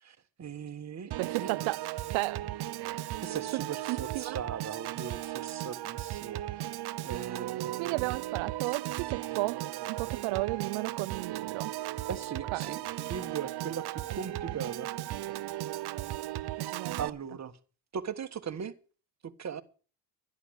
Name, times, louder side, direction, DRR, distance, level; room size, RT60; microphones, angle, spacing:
voice 1, 0.0-1.7 3.2-6.4 7.0-8.0 12.0-14.9 17.0-17.5 17.9-18.7 19.4-19.6, right 7 dB, 35° right, 1.5 m, -39 dB
Piano / Organ, 1.1-17.1, right 14 dB, 55° right, 0.8 m, -36 dB
voice 2, 1.2-1.9 2.1-2.5 2.8-3.1 3.5-3.6 3.9-4.4 7.8-11.7 12.5-12.8 16.6-17.0, right 22 dB, 90° right, 0.7 m, -34 dB
12.0 x 11.0 x 6.4 m
cardioid pair, 100°, 45 cm